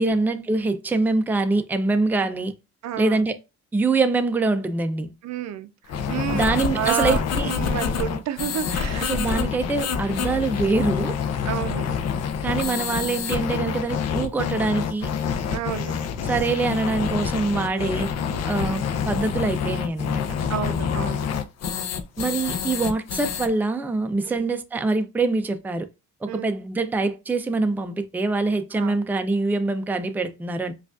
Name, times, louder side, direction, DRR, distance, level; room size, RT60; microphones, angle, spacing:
voice 1, 0.0-2.5 3.0-3.4 3.7-5.1 6.3-7.5 9.0-11.2 12.4-15.1 16.2-18.1 18.4-20.2 22.2-25.9 26.2-30.7, right 3 dB, 5° right, 0.4 m, -24 dB
voice 2, 2.8-3.2 5.2-9.1 11.4-11.9 15.5-15.9 20.5-21.3 24.3-24.5 26.3-26.5 28.7-29.0, right 11 dB, 65° right, 0.5 m, -30 dB
sound 1, 5.9-23.5, left 7 dB, 60° left, 0.6 m, -27 dB
4.9 x 2.4 x 2.4 m
cardioid pair, 90°, 30 cm